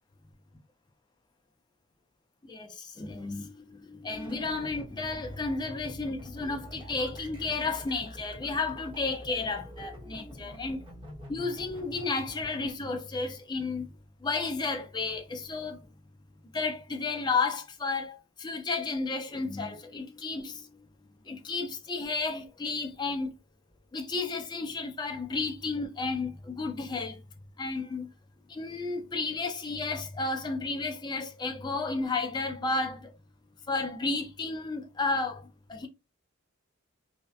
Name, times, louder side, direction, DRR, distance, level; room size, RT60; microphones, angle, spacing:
voice 1, 2.4-10.8 11.3-13.9 14.2-15.8 16.5-20.7 21.3-23.3 23.9-27.2 27.6-28.1 28.5-33.1 33.7-35.4 35.7-35.9, left 3 dB, 20° left, 0.4 m, -32 dB
sound 1, 4.1-12.7, left 1 dB, 25° right, 0.8 m, -46 dB
2.7 x 2.0 x 2.4 m
head